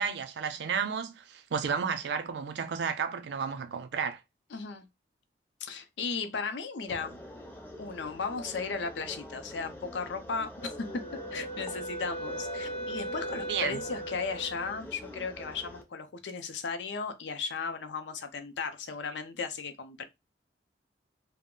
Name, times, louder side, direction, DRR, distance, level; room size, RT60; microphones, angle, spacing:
voice 1, 0.0-4.2 13.5-13.8, right 6 dB, 75° right, 0.4 m, -32 dB
voice 2, 4.5-4.8 5.6-7.2 7.8-10.9 11.3-20.0, left 5 dB, 85° left, 0.5 m, -36 dB
sound 1, 6.9-15.8, left 1 dB, 10° left, 0.4 m, -45 dB
Wind instrument woodwind instrument, 10.6-14.7, right 1 dB, 50° left, 0.8 m, -38 dB
2.3 x 2.0 x 3.6 m
head